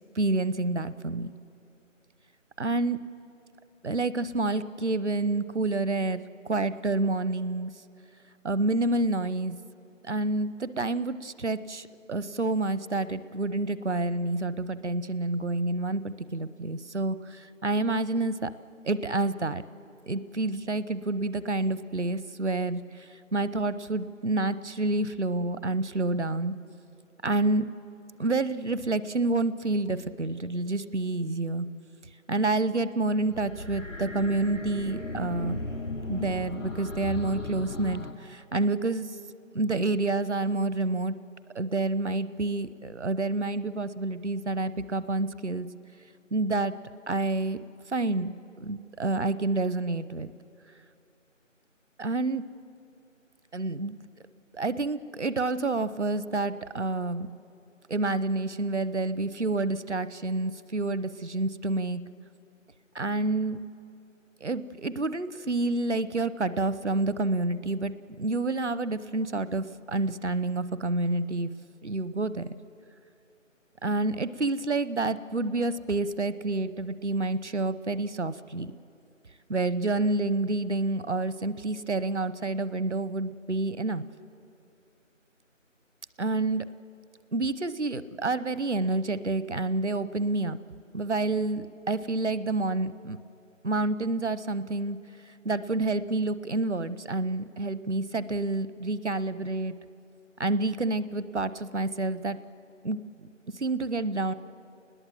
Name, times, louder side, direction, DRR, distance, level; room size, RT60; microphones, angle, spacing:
voice 1, 0.1-1.3 2.6-3.0 3.8-7.7 8.4-9.6 10.0-18.5 18.8-19.6 20.1-26.6 27.2-27.7 28.2-31.7 32.3-35.6 36.1-39.1 39.5-41.1 41.5-45.7 46.3-46.7 47.1-47.6 47.9-50.3 52.0-52.4 53.5-54.0 54.5-57.3 57.9-62.0 62.9-63.6 64.4-71.5 71.8-72.5 73.8-78.7 79.5-84.0 86.2-86.7 87.3-90.6 90.9-93.2 93.6-95.0 95.2-99.7 100.4-102.4 102.8-103.3 103.5-104.3, right 2 dB, 60° right, 15 dB, 0.9 m, -28 dB
sound 1, 33.2-38.1, left 2 dB, 85° left, 2.8 m, -36 dB
28.0 x 20.5 x 7.5 m, 2.6 s
figure-of-eight pair, 175°, 39 cm